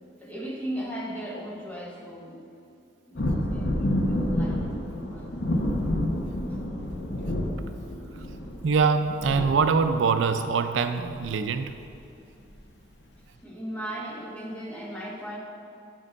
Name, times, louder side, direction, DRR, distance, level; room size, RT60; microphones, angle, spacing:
voice 1, 0.2-2.5 3.1-5.5 7.1-7.2 13.4-15.4, equal, 10° left, -3 dB, 1.0 m, -37 dB
sound 1, 3.2-10.2 11.2-11.3 11.6-11.9 12.5-12.6, left 1 dB, 65° left, 0.8 m, -29 dB
voice 2, 8.6-11.7, right 5 dB, 80° right, 9 dB, 0.4 m, -23 dB
7.5 x 5.3 x 5.3 m, 2.6 s
head